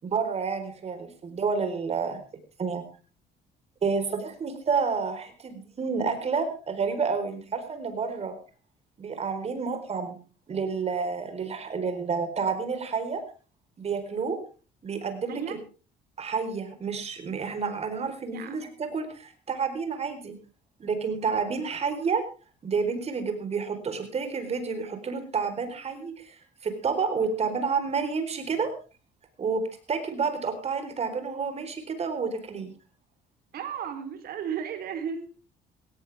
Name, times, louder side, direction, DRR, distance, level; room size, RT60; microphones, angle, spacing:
voice 1, 0.0-2.2 2.6-2.8 3.8-8.4 9.0-10.2 10.5-13.2 13.8-14.4 14.8-15.6 16.2-20.4 20.8-22.2 22.6-28.7 29.4-29.6 29.9-32.7, right 5 dB, 40° right, 8 dB, 4.3 m, -29 dB
voice 2, 15.3-15.6 18.3-18.7 33.5-35.3, right 7 dB, 65° right, 7 dB, 3.7 m, -34 dB
17.5 x 17.5 x 3.6 m, 0.35 s
cardioid pair, 110°, 17 cm